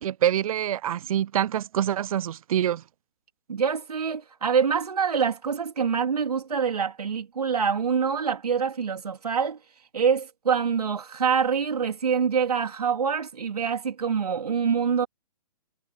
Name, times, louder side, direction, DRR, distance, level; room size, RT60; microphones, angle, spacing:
voice 1, 0.0-2.8, right 10 dB, 65° right, 0.5 m, -25 dB
voice 2, 3.5-9.6 9.9-15.1, right 6 dB, 85° right, 3.2 m, -25 dB
hypercardioid pair, 140°, 19 cm